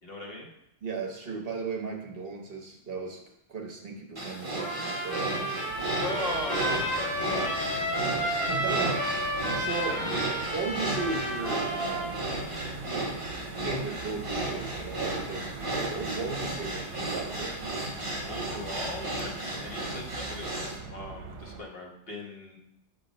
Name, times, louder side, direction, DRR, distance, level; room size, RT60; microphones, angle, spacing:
voice 1, 0.0-0.5 6.0-9.1 9.9-10.2 18.2-22.6, left 1 dB, 55° left, -1 dB, 1.4 m, -38 dB
voice 2, 0.8-3.2 3.5-5.6 8.5-9.0 9.5-10.0 10.5-12.3 13.6-18.0, right 4 dB, 55° right, 1 dB, 1.2 m, -36 dB
sound 1, 4.2-20.8, right 1 dB, 30° right, 1.3 m, -34 dB
Trumpet, 4.6-12.2, right 1 dB, 80° left, 2.2 m, -32 dB
sound 2, 5.7-21.6, right 4 dB, 80° right, 1.0 m, -43 dB
6.7 x 3.7 x 5.2 m, 0.80 s
omnidirectional pair, 1.2 m